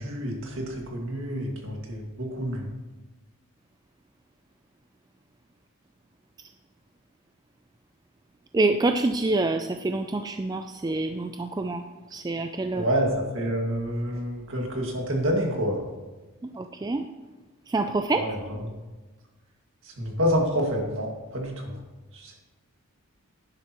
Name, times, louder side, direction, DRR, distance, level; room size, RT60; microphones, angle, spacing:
voice 1, 0.0-2.7 12.7-15.8 18.1-18.4 20.0-21.7 22.1-22.3, equal, 60° right, 0 dB, 2.0 m, -28 dB
voice 2, 8.5-11.8 12.1-12.9 16.4-17.1 17.7-18.3, right 2 dB, 20° right, 7 dB, 0.3 m, -26 dB
11.0 x 10.5 x 3.0 m, 1.2 s
head